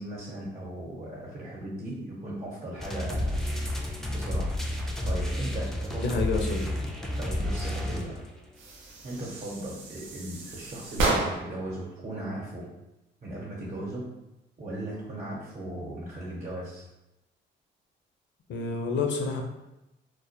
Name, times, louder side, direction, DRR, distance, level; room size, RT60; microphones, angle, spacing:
voice 1, 0.0-6.2 7.2-8.1 9.0-12.7 13.2-14.1 14.6-16.9, right 1 dB, 40° right, -6 dB, 0.8 m, -37 dB
sound 1, 2.8-8.4, left 1 dB, ahead, 0.3 m, -31 dB
voice 2, 6.0-6.6 18.5-19.4, left 4 dB, 65° left, 3 dB, 0.5 m, -28 dB
sound 2, 8.5-11.7, right 2 dB, 85° right, 0.5 m, -31 dB
2.2 x 2.0 x 2.7 m, 0.93 s
cardioid pair, 90°, 20 cm